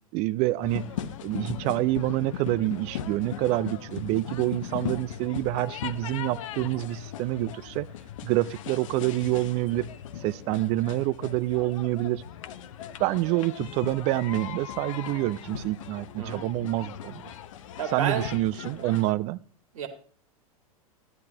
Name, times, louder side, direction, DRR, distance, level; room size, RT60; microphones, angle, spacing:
voice 1, 0.1-0.9 1.2-7.9 8.2-9.9 10.2-12.2 13.0-17.2 17.9-19.4, right 17 dB, 35° right, 20 dB, 0.4 m, -27 dB
sound 1, 0.6-19.1, left 9 dB, 60° left, 0.8 m, -38 dB
voice 2, 16.2-16.5 17.8-18.3 19.7-19.9, right 7 dB, 60° right, 7 dB, 1.8 m, -30 dB
13.0 x 10.5 x 2.9 m, 0.43 s
figure-of-eight pair, 95°, 19 cm